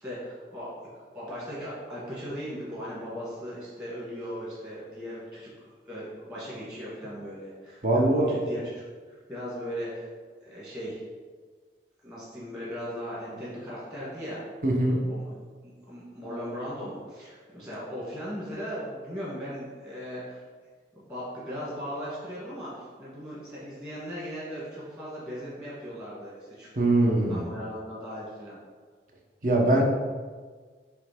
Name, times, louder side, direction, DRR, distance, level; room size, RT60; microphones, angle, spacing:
voice 1, 0.0-10.1 10.4-11.0 12.0-14.4 15.1-15.3 15.6-20.4 20.9-28.6, equal, 20° right, -8 dB, 2.2 m, -38 dB
voice 2, 7.8-8.3 14.6-15.0 26.8-27.4 29.4-29.9, right 1 dB, 45° right, -1 dB, 1.1 m, -22 dB
7.7 x 3.4 x 5.3 m, 1.5 s
head